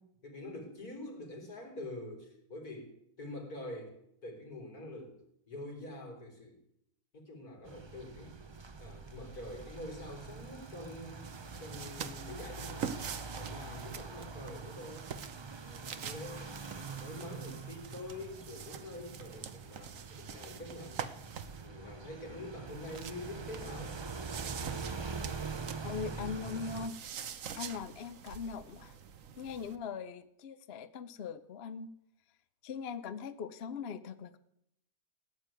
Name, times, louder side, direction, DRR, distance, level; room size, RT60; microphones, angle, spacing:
voice 1, 0.0-2.9 3.2-5.2 5.5-6.6 7.1-8.4 8.8-11.2 11.6-15.1 15.6-21.0 21.6-24.0, left 1 dB, 80° left, 1 dB, 4.4 m, -46 dB
sound 1, 7.7-26.9, right 4 dB, 35° right, 0.4 m, -44 dB
sound 2, 11.2-21.7 22.7-29.8, right 7 dB, 60° right, 1.3 m, -45 dB
voice 2, 25.8-27.0 27.6-29.0 29.4-31.9 32.6-34.4, left 6 dB, 50° left, 13 dB, 0.9 m, -40 dB
16.5 x 9.4 x 9.0 m, 0.76 s
omnidirectional pair, 1.6 m